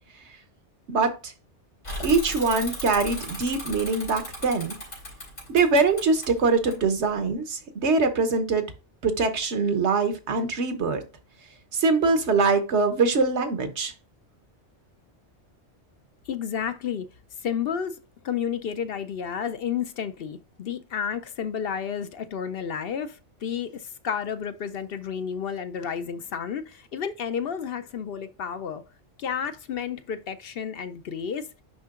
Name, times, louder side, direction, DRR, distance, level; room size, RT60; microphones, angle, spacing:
voice 1, 0.9-1.3 2.0-4.8 5.5-8.7 9.0-11.0 11.7-13.9, right 4 dB, 75° right, 1.3 m, -23 dB
Bicycle / Mechanisms, 1.8-7.3, left 1 dB, 90° left, 4.1 m, -37 dB
voice 2, 16.3-17.1 17.4-18.0 18.2-23.7 24.0-28.8 29.2-31.4, left 7 dB, 65° left, 0.7 m, -31 dB
10.5 x 3.7 x 2.4 m
omnidirectional pair, 1.2 m